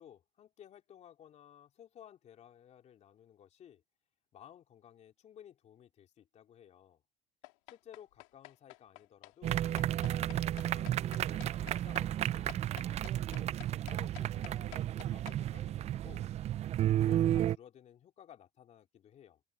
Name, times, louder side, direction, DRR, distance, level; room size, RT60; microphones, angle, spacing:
voice 1, 0.0-3.8 4.3-7.0 7.7-10.9 11.3-13.5 13.9-16.3 16.8-19.4, left 10 dB, 45° left, 3.1 m, -57 dB
sound 1, 7.4-15.4, left 28 dB, 75° left, 4.1 m, -50 dB
sound 2, 9.4-17.6, right 12 dB, 40° right, 0.6 m, -32 dB
open air
hypercardioid pair, 90°, 17 cm